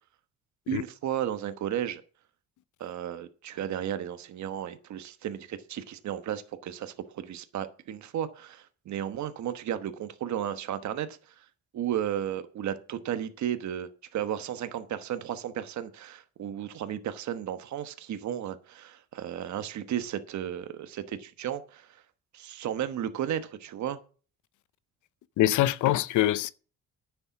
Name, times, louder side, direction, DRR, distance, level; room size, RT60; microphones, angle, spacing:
voice 1, 0.7-2.0 2.8-11.4 11.7-21.9 22.3-24.0, right 10 dB, 70° right, 1.2 m, -34 dB
voice 2, 25.4-26.5, left 14 dB, 80° left, 0.6 m, -24 dB
9.8 x 7.0 x 7.0 m
cardioid pair, 90°, 30 cm